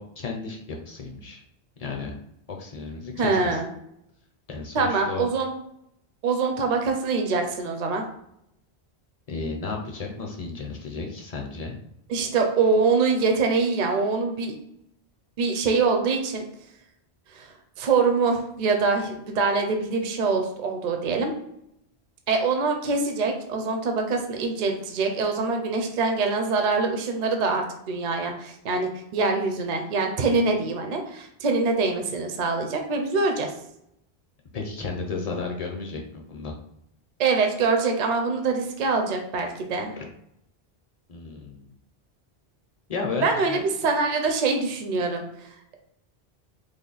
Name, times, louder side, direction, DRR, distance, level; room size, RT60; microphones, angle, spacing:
voice 1, 0.0-1.4 1.8-2.1 2.5-3.6 4.5-5.3 9.3-11.8 34.5-36.5 39.9-40.0 41.1-41.7 42.9-43.6, left 4 dB, 45° left, 1 dB, 0.5 m, -33 dB
voice 2, 3.2-3.7 4.7-5.5 6.2-8.0 12.1-14.5 15.4-16.4 17.3-17.5 17.8-21.3 22.3-33.5 37.2-39.9 43.2-45.2, right 4 dB, 55° right, 4 dB, 0.6 m, -24 dB
3.4 x 2.2 x 3.9 m, 0.77 s
omnidirectional pair, 1.1 m